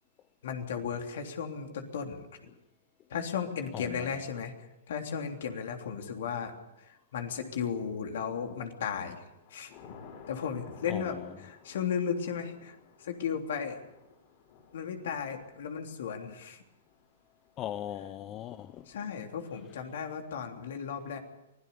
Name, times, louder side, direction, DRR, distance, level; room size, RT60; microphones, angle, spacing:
voice 1, 0.4-2.5 3.1-9.2 9.5-9.9 10.3-13.8 14.7-16.6 18.8-21.2, left 7 dB, 65° left, 3.3 m, -35 dB
voice 2, 3.7-4.1 10.9-11.3 17.6-18.9, left 11 dB, 30° left, 0.8 m, -39 dB
Thunder / Rain, 7.9-8.4 8.8-20.0, left 6 dB, 50° left, 7.3 m, -56 dB
24.5 x 17.0 x 7.0 m
hypercardioid pair, 120°, 0 cm